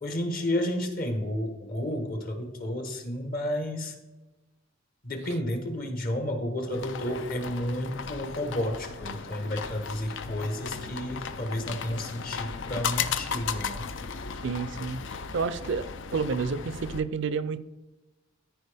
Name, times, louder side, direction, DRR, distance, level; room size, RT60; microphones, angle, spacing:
voice 1, 0.0-3.9 5.0-13.9, left 1 dB, 50° left, 5 dB, 1.3 m, -31 dB
sound 1, 6.7-17.0, left 6 dB, 65° left, 0.5 m, -36 dB
voice 2, 14.4-15.0 15.3-15.9 16.1-17.6, right 5 dB, 65° right, 14 dB, 0.5 m, -29 dB
13.5 x 4.6 x 3.5 m, 1.1 s
head